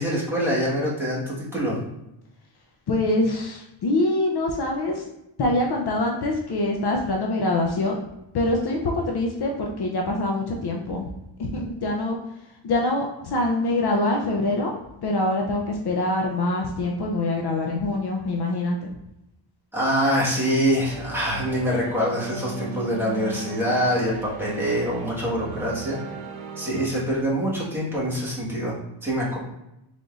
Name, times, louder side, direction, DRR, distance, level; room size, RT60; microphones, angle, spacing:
voice 1, 0.0-1.8 19.7-26.0 26.6-29.4, equal, 5° right, -7 dB, 1.4 m, -25 dB
voice 2, 2.9-5.1 5.4-8.0 8.3-11.1 11.4-12.2 12.6-14.7 15.0-18.9, left 2 dB, 55° left, 0 dB, 0.6 m, -24 dB
sound 1, 20.9-26.9, right 4 dB, 75° right, 0.6 m, -37 dB
3.9 x 3.5 x 2.4 m, 0.88 s
wide cardioid pair, 120°, 47 cm